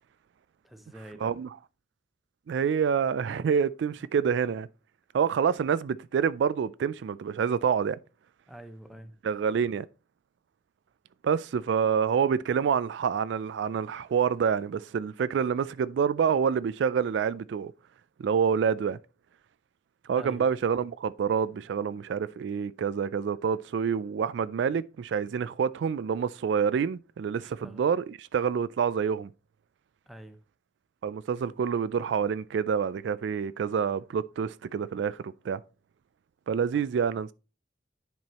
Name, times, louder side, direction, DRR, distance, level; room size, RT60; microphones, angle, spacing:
voice 1, 0.6-1.3 8.5-9.1 20.1-20.5 27.4-27.8 30.1-30.4, right 1 dB, ahead, 0.7 m, -46 dB
voice 2, 2.5-4.7 5.1-8.0 9.2-9.9 11.2-17.7 18.2-19.0 20.1-29.3 31.0-35.6 36.5-37.3, right 7 dB, 70° right, 0.3 m, -27 dB
10.5 x 4.6 x 2.9 m
head